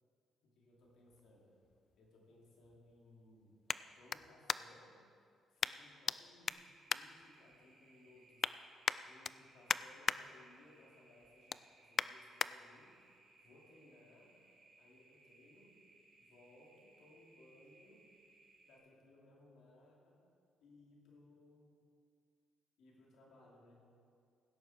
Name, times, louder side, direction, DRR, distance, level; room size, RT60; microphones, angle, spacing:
voice 1, 0.4-1.5 2.0-3.6 3.9-5.0 5.5-8.5 9.0-13.0 13.4-14.3 14.8-15.8 16.2-18.1 18.6-20.2 20.6-21.8 22.8-23.8, left 2 dB, 75° left, -3 dB, 3.4 m, -63 dB
sound 1, 0.8-4.9 5.6-6.2 6.4-7.8 8.1-8.5 8.8-10.2 10.6-10.9 11.2-12.5 13.1-13.2, left 6 dB, 45° left, 0.3 m, -39 dB
sound 2, 6.5-18.8, right 3 dB, 80° right, 3.3 m, -67 dB
17.0 x 10.0 x 4.6 m, 2.4 s
cardioid pair, 90°, 0 cm